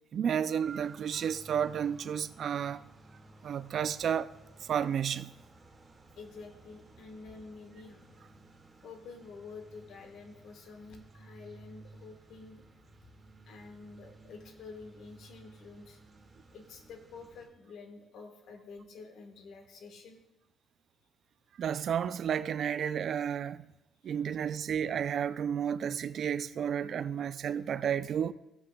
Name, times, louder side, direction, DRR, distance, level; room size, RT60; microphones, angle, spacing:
voice 1, 0.1-2.8 3.4-4.3 4.6-5.4 21.6-23.7 24.0-28.3, right 8 dB, 60° right, 0.4 m, -32 dB
sound 1, 0.6-17.5, right 2 dB, 30° right, 2.0 m, -56 dB
voice 2, 6.1-8.2 8.8-12.6 13.4-16.0 16.5-20.2 24.0-24.1, left 4 dB, 75° left, 1.3 m, -49 dB
15.5 x 7.7 x 2.3 m
cardioid pair, 90°, 0 cm